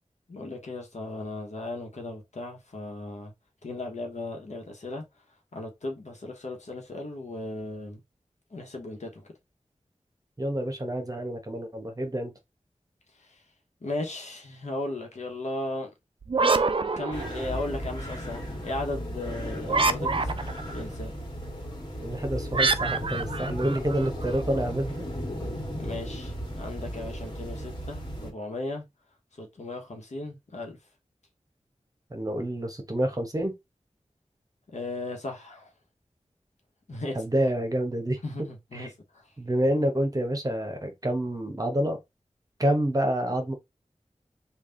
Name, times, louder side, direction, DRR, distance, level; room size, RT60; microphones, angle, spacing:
voice 1, 0.3-3.3 3.6-5.1 5.5-8.0 8.5-9.2 13.1-13.4 13.8-15.9 17.0-20.3 20.7-21.1 25.8-28.8 29.4-30.8 34.7-35.7 36.9-37.2 38.2-39.2, left 2 dB, 75° left, 1.1 m, -36 dB
voice 2, 10.4-12.3 22.0-25.1 32.1-33.5 37.1-38.2 38.7-38.9 39.4-42.0 42.6-43.5, right 1 dB, 30° right, 1.1 m, -28 dB
sound 1, 16.2-17.8 19.6-20.7 22.5-24.4, right 3 dB, 45° right, 0.4 m, -26 dB
sound 2, 17.1-28.3, equal, 40° left, 1.5 m, -35 dB
3.4 x 2.5 x 3.8 m
wide cardioid pair, 55°, 12 cm